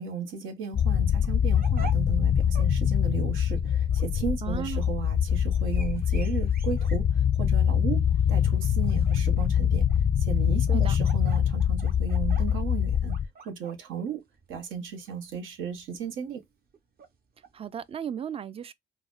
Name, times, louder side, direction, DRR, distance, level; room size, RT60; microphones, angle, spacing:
voice 1, 0.0-13.1 13.4-14.2 14.5-16.4, right 7 dB, 80° right, 0.9 m, -35 dB
sound 1, 0.7-13.3, left 8 dB, 40° left, 0.4 m, -24 dB
sound 2, 1.2-17.9, right 6 dB, 50° right, 0.9 m, -49 dB
voice 2, 4.4-4.8 10.7-11.0 17.5-18.7, right 8 dB, 30° right, 0.4 m, -35 dB
3.9 x 2.0 x 2.4 m
cardioid pair, 90°, 20 cm